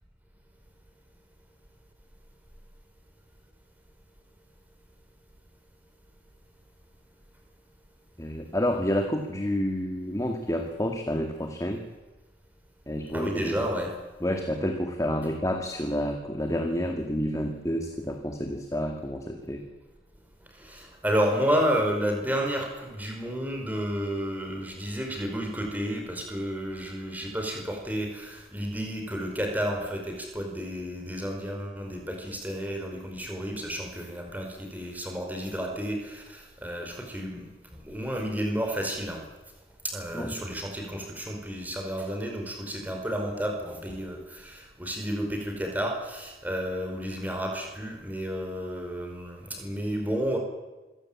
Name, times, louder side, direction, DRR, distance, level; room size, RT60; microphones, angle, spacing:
voice 1, 8.2-11.8 12.9-13.6 14.2-19.6 40.1-40.4, equal, 20° left, 4 dB, 2.0 m, -29 dB
voice 2, 13.1-13.9 20.5-39.2 39.8-50.4, equal, 10° right, 2 dB, 5.0 m, -31 dB
26.5 x 16.5 x 8.8 m, 1.1 s
head